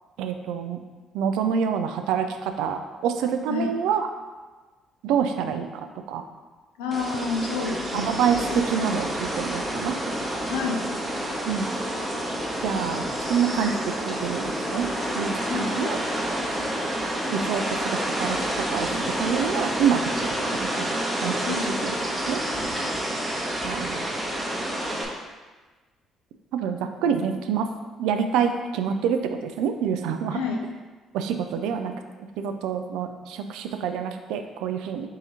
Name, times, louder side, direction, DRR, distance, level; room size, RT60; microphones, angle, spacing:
voice 1, 0.2-0.8 1.1-4.1 5.0-6.2 7.9-10.0 11.5-11.7 12.6-13.0 13.3-14.9 15.1-16.0 17.3-20.0 20.5-21.4 21.7-22.0 22.3-22.4 23.6-24.1 26.5-27.7 28.0-30.4 31.1-31.9 32.4-35.1, right 7 dB, 80° right, 7 dB, 0.3 m, -27 dB
voice 2, 6.8-8.2 10.5-10.9 15.5-15.7 21.4-21.7 30.3-30.6, left 4 dB, 90° left, 1 dB, 0.5 m, -29 dB
sound 1, 6.9-25.0, right 1 dB, 25° right, 0.9 m, -29 dB
3.6 x 2.8 x 4.2 m, 1.3 s
hypercardioid pair, 60°, 0 cm